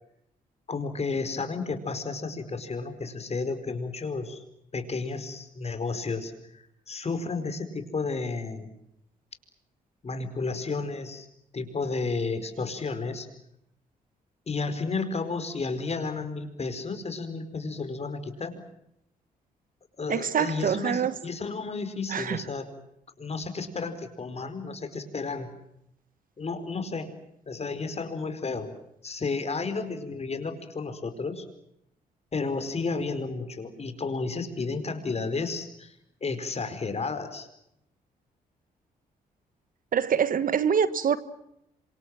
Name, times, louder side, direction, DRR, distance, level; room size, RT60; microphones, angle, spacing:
voice 1, 0.7-4.4 4.7-8.7 10.0-11.3 11.5-13.3 14.5-18.6 20.0-22.7 23.2-25.5 26.4-27.1 27.5-28.7 29.0-31.5 32.3-37.5, left 4 dB, 40° left, 5.0 m, -32 dB
voice 2, 20.1-21.1 22.1-22.4 39.9-41.2, right 7 dB, 60° right, 1.4 m, -25 dB
27.0 x 25.5 x 7.6 m
cardioid pair, 70°, 16 cm